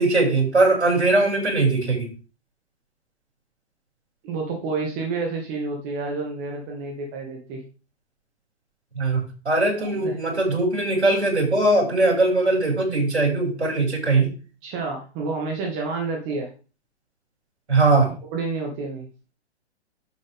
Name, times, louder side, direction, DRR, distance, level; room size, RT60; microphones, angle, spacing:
voice 1, 0.0-2.1 9.0-14.3 17.7-18.1, right 2 dB, 70° right, 0 dB, 6.5 m, -20 dB
voice 2, 4.2-7.6 9.8-10.2 14.6-16.5 18.3-19.1, right 4 dB, 25° right, 1 dB, 2.0 m, -29 dB
10.5 x 8.2 x 3.7 m, 0.34 s
figure-of-eight pair, 120°, 34 cm